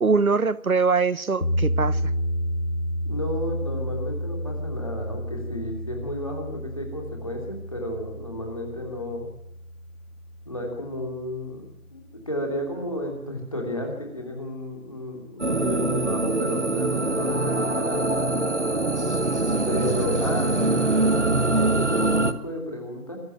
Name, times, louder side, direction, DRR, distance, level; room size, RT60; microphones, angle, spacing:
voice 1, 0.0-2.1, right 4 dB, 75° right, 0.9 m, -22 dB
sound 1, 1.4-11.4, equal, 60° left, 2.8 m, -31 dB
voice 2, 3.0-9.3 10.4-18.1 19.7-23.2, left 1 dB, 25° left, 3.0 m, -32 dB
sound 2, 15.4-22.3, right 2 dB, 55° right, 1.4 m, -23 dB
25.0 x 13.0 x 8.9 m
figure-of-eight pair, 180°, 44 cm